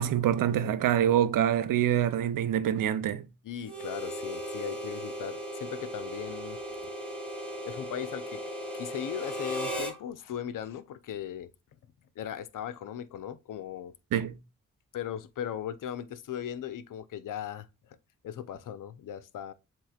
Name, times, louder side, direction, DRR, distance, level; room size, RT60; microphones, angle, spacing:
voice 1, 0.0-3.3 14.1-14.4, right 10 dB, 75° right, 0.6 m, -25 dB
voice 2, 3.4-6.6 7.6-8.4 8.7-11.5 12.2-13.9 14.9-17.7 18.2-19.5, left 10 dB, 70° left, 0.6 m, -38 dB
Harmonica, 3.6-10.0, equal, 5° left, 1.7 m, -37 dB
7.4 x 3.0 x 2.4 m
supercardioid pair, 50°, 33 cm